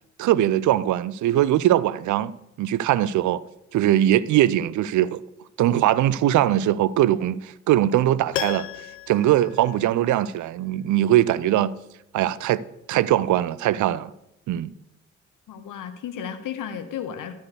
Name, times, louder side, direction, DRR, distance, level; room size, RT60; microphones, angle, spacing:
voice 1, 0.2-3.4 3.7-5.2 5.6-8.7 9.1-11.7 12.1-12.6 12.9-14.1 14.5-14.7, right 13 dB, 55° right, 0.6 m, -21 dB
Piano, 8.3-10.4 10.7-10.8, left 14 dB, 85° left, 0.5 m, -34 dB
voice 2, 15.5-17.3, left 8 dB, 55° left, 1.2 m, -33 dB
12.5 x 4.6 x 6.7 m
figure-of-eight pair, 40°, 37 cm